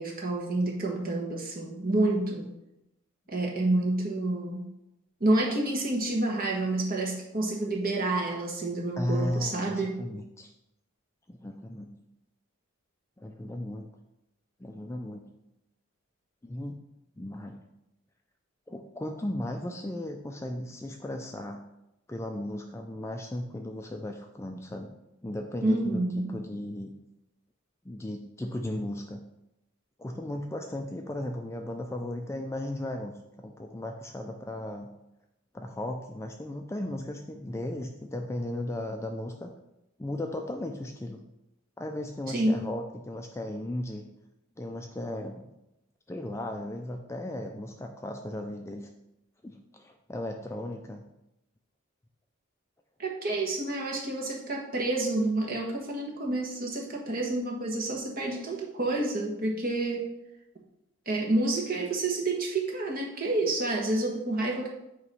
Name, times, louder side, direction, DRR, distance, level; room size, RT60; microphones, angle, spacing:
voice 1, 0.0-2.5 3.3-4.7 5.2-10.0 25.6-26.3 42.3-42.7 53.0-60.1 61.1-64.7, right 2 dB, 40° right, -1 dB, 1.3 m, -29 dB
voice 2, 9.0-10.5 11.3-11.9 13.2-13.9 14.6-15.2 16.4-16.8 17.2-17.6 18.7-21.6 22.1-24.9 25.2-26.0 26.3-26.9 27.9-29.2 30.0-34.9 35.5-39.5 40.0-41.2 41.8-44.0 44.6-45.5 46.1-48.9 49.4-51.0, left 1 dB, 10° left, 3 dB, 0.3 m, -36 dB
8.2 x 3.0 x 5.4 m, 0.89 s
head